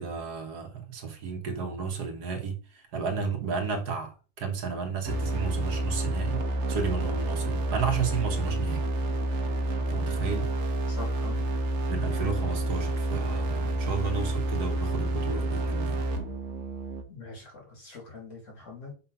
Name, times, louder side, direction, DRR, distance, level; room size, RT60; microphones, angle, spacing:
voice 1, 0.0-6.4 6.7-8.8 9.9-10.5 11.9-16.0, right 5 dB, 85° right, 1.7 m, -32 dB
sound 1, 5.0-17.0, right 1 dB, 50° right, 1.2 m, -29 dB
voice 2, 10.9-11.5 17.1-18.9, left 3 dB, 50° left, 3.2 m, -43 dB
5.7 x 3.2 x 5.6 m
omnidirectional pair, 1.6 m